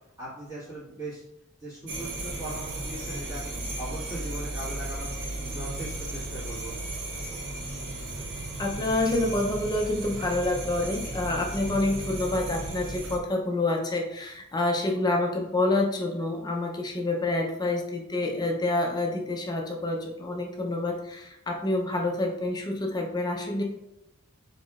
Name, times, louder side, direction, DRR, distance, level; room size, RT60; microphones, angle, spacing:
voice 1, 0.2-1.2 1.6-3.5 3.8-5.1 5.4-6.8, right 1 dB, 15° right, -10 dB, 1.4 m, -39 dB
sound 1, 1.9-13.2, right 2 dB, 55° right, 0.7 m, -35 dB
voice 2, 8.6-23.6, left 2 dB, 20° left, 1 dB, 0.5 m, -28 dB
4.4 x 3.0 x 2.4 m, 0.87 s
head